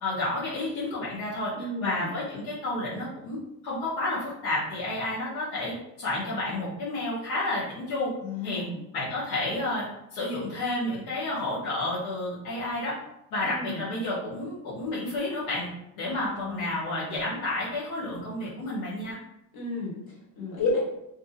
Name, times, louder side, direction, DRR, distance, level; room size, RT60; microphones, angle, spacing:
voice 1, 0.0-1.5 1.8-8.1 8.4-8.6 8.9-9.9 10.1-12.9 13.3-15.7 16.0-19.2, left 2 dB, 90° left, -8 dB, 0.9 m, -30 dB
voice 2, 1.5-2.1 8.2-8.8 13.4-13.8 16.3-16.8 19.5-20.8, left 3 dB, 60° left, -5 dB, 1.4 m, -32 dB
2.6 x 2.5 x 2.4 m, 0.82 s
supercardioid pair, 85°, 43 cm